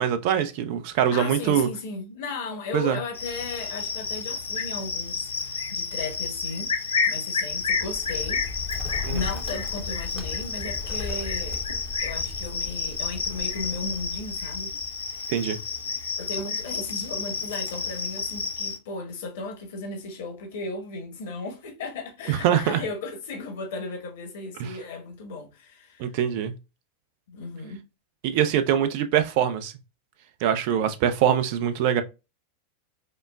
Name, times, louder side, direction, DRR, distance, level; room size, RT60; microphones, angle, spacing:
voice 1, 0.0-1.7 2.7-3.0 9.0-9.2 15.3-15.6 22.3-22.8 24.6-24.7 26.0-26.5 28.2-29.7 30.4-32.0, right 9 dB, 45° right, 0.5 m, -23 dB
voice 2, 1.1-6.7 7.1-8.4 9.1-11.6 12.0-14.7 16.2-26.1 27.3-27.8, left 3 dB, 55° left, 1.0 m, -35 dB
Cricket, 3.1-18.8, left 5 dB, 75° left, 0.5 m, -31 dB
Bird, 7.5-15.2, left 4 dB, 5° right, 0.8 m, -37 dB
5.1 x 2.1 x 2.3 m
figure-of-eight pair, 90°, 0 cm